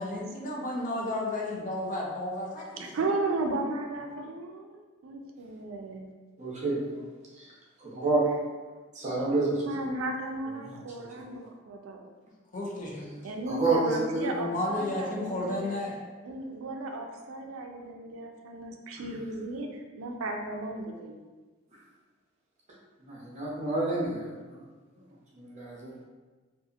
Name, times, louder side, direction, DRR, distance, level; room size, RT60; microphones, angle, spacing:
voice 1, 0.0-2.8 12.5-13.2 14.5-15.9, left 2 dB, 40° left, -3 dB, 0.5 m, -32 dB
voice 2, 2.8-6.1 9.7-12.1 13.2-15.8 16.2-21.2, right 2 dB, 85° right, 3 dB, 0.4 m, -35 dB
voice 3, 6.4-7.0 7.3-7.5 7.8-8.2 8.9-9.7 10.5-11.1 13.5-14.5 19.0-19.1 23.0-24.6 24.9-25.0 25.3-25.9, right 2 dB, 35° right, -5 dB, 0.7 m, -29 dB
2.7 x 2.4 x 2.4 m, 1.3 s
head